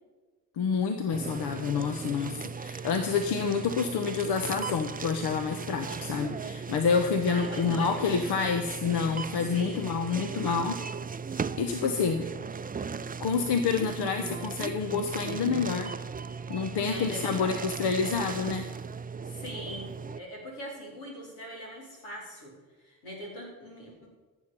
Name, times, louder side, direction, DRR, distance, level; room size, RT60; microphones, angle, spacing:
voice 1, 0.6-10.8 11.6-12.3 13.2-15.9 16.5-18.7, left 5 dB, 65° left, 6 dB, 1.1 m, -28 dB
sound 1, 1.1-20.2, right 5 dB, 20° right, 0.5 m, -37 dB
voice 2, 7.3-8.0 9.4-10.6 16.7-17.6 19.2-22.5 22.8-24.1, equal, 85° left, -4 dB, 4.2 m, -41 dB
14.5 x 7.3 x 6.9 m, 1.3 s
hypercardioid pair, 40°, 43 cm